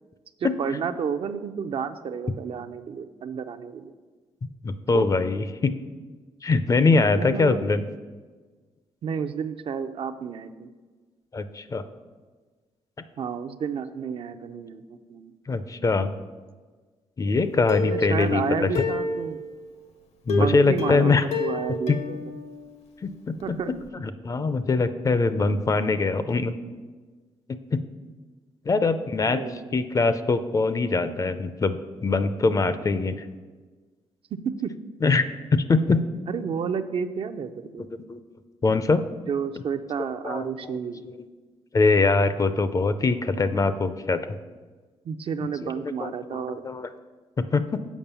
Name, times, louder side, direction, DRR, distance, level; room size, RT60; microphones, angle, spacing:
voice 1, 0.4-3.9 4.9-5.1 7.2-7.6 9.0-10.7 13.2-15.3 17.8-19.4 20.3-22.2 23.4-23.7 29.3-29.8 34.4-34.7 36.3-37.8 39.3-41.0 45.0-46.6, right 6 dB, 55° right, 9 dB, 0.5 m, -31 dB
voice 2, 4.6-5.7 6.4-7.8 9.0-9.1 11.3-11.8 15.5-16.1 17.2-18.8 20.3-21.3 21.9-22.0 23.0-26.5 27.7-27.8 28.7-29.4 29.7-33.3 35.0-36.0 38.1-38.2 38.6-39.0 40.2-40.8 41.0-41.2 41.7-44.2 45.6-46.9 47.4-47.8, left 3 dB, 30° left, 12 dB, 0.5 m, -23 dB
Plucked string instrument, 17.7-19.7 20.3-23.1 23.4-23.5 23.9-24.0, left 4 dB, 70° left, 0.9 m, -30 dB
7.2 x 5.3 x 6.8 m, 1.4 s
cardioid pair, 110°, 11 cm